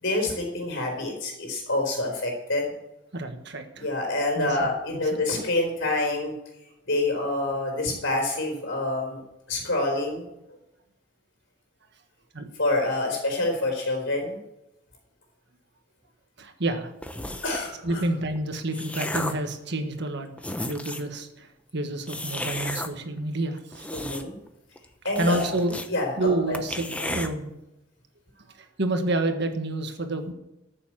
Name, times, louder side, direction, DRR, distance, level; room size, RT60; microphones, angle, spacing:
voice 1, 0.0-2.7 3.8-6.3 6.9-9.2 9.5-10.3 12.6-14.4 17.4-18.0 23.9-24.3 25.0-25.4 25.9-26.6, left 2 dB, 65° left, -1 dB, 4.0 m, -27 dB
voice 2, 3.1-3.9 4.3-4.7 5.1-5.2 12.3-12.5 16.4-16.9 17.8-20.3 20.6-23.9 25.2-25.8 26.2-27.5 28.6-30.3, right 2 dB, 60° right, 6 dB, 1.5 m, -29 dB
sound 1, 17.0-17.7 18.4-19.5 20.1-20.2 20.4-21.1 22.1-22.9 23.6-24.5 24.8-24.9 25.2-25.9 26.2-26.3 26.5-27.3, left 1 dB, 5° left, 0.8 m, -33 dB
14.0 x 7.1 x 7.4 m, 0.91 s
head